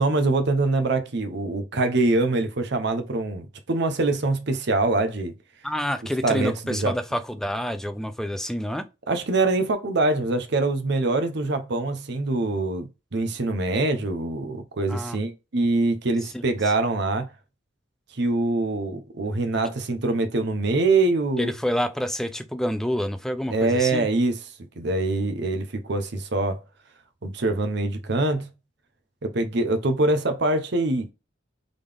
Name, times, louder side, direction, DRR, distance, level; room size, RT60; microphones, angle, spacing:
voice 1, 0.0-5.3 6.2-6.9 9.1-17.3 18.2-21.5 23.5-24.4 24.8-26.6 27.2-28.5 29.2-31.1, right 2 dB, 65° right, 0.8 m, -24 dB
voice 2, 5.6-8.9 14.9-15.2 16.3-16.4 21.4-24.1, equal, 5° left, 0.4 m, -28 dB
3.9 x 3.4 x 3.5 m
head